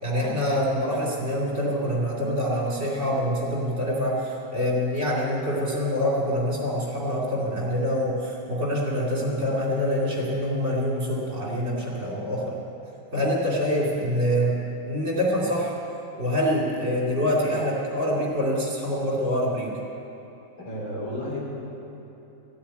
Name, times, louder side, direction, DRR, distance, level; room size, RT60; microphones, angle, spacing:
voice 1, 0.0-12.6 13.1-15.7 16.2-19.7, equal, 35° right, -4 dB, 2.9 m, -25 dB
voice 2, 20.6-21.4, left 1 dB, 80° left, -4 dB, 4.3 m, -32 dB
14.5 x 8.5 x 9.1 m, 2.9 s
omnidirectional pair, 2.2 m